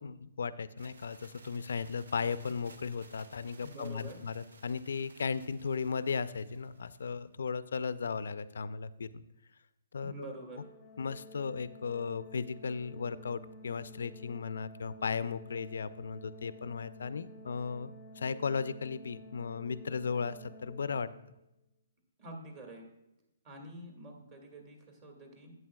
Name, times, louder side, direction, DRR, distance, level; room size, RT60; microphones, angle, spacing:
voice 1, 0.0-9.2 9.9-10.3 11.0-17.9 18.2-21.1, left 5 dB, 75° left, 15 dB, 0.4 m, -36 dB
sound 1, 0.8-7.2, right 3 dB, 80° right, 0.9 m, -58 dB
voice 2, 3.6-4.3 10.0-10.7 22.2-22.9 23.4-25.5, right 1 dB, 30° right, 2 dB, 1.9 m, -47 dB
Organ, 10.5-21.4, left 1 dB, 20° left, 0.6 m, -52 dB
11.0 x 8.4 x 2.3 m, 0.88 s
hypercardioid pair, 150°, 0 cm